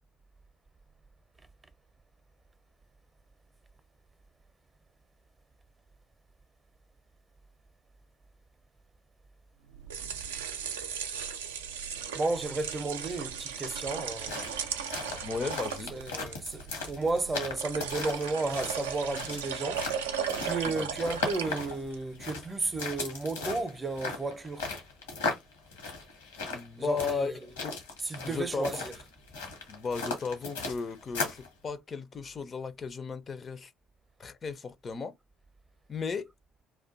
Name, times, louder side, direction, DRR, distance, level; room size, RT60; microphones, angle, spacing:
sound 1, 9.7-22.0, right 7 dB, 80° right, 0.3 m, -37 dB
voice 1, 12.1-14.7 15.9-19.9 20.4-24.7 26.8-27.4 28.0-28.9, right 3 dB, 25° right, 0.5 m, -33 dB
sound 2, 14.0-31.5, left 4 dB, 80° left, 0.8 m, -37 dB
voice 2, 15.2-15.9 20.8-20.9 26.5-27.8 28.2-28.9 29.7-33.7 34.2-35.1 35.9-36.3, left 5 dB, 40° left, 0.4 m, -35 dB
2.4 x 2.2 x 2.5 m
hypercardioid pair, 55°, 0 cm